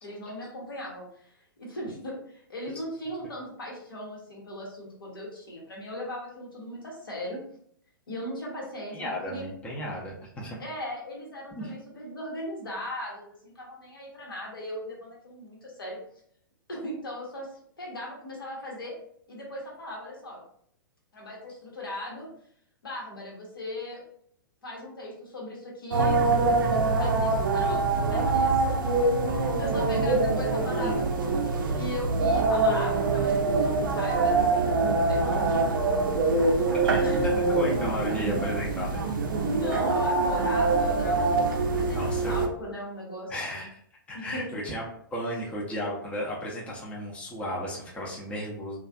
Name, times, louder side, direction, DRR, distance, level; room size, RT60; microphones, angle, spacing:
voice 1, 0.0-1.3 1.6-7.4 8.1-9.4 10.6-16.0 16.7-17.5 17.8-18.9 19.3-20.4 21.1-22.3 22.8-24.0 24.6-28.7 29.6-35.9 37.0-37.3 39.5-43.7 44.1-44.5, equal, 75° left, -3 dB, 1.0 m, -38 dB
voice 2, 8.9-10.6 11.5-11.7 30.7-30.9 36.7-39.0 41.9-42.4 43.3-43.7 44.1-44.8 45.1-48.8, equal, 10° left, -4 dB, 0.5 m, -34 dB
sound 1, 25.9-42.5, right 3 dB, 65° right, 0.4 m, -24 dB
2.4 x 2.3 x 2.3 m, 0.64 s
figure-of-eight pair, 110°, 12 cm